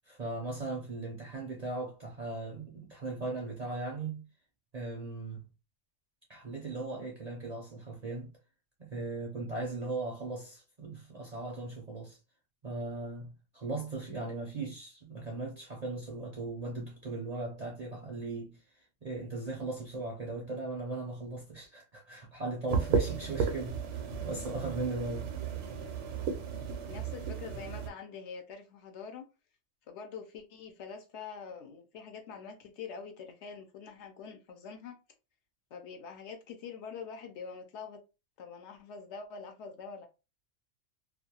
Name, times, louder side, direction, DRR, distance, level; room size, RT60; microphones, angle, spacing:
voice 1, 0.0-4.3 4.7-5.4 6.3-8.3 8.8-12.2 12.6-25.3, right 2 dB, 45° right, 0.5 m, -38 dB
sound 1, 22.7-27.9, right 6 dB, 70° right, 0.9 m, -34 dB
voice 2, 26.9-29.3 29.9-35.0 35.7-38.0 38.4-40.1, left 6 dB, 70° left, 0.8 m, -45 dB
2.4 x 2.2 x 2.7 m
omnidirectional pair, 1.3 m